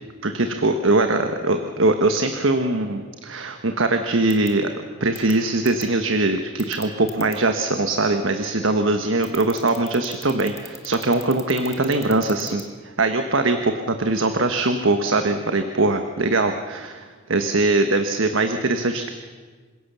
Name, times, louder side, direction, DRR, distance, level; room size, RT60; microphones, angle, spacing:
voice 1, 0.2-19.1, right 2 dB, 70° right, 7 dB, 1.3 m, -22 dB
sound 1, 4.3-4.5 5.2-5.3 5.7-5.8 6.6-7.4 9.2-12.6, left 5 dB, 15° left, 1.5 m, -39 dB
26.5 x 16.5 x 6.9 m, 1.5 s
head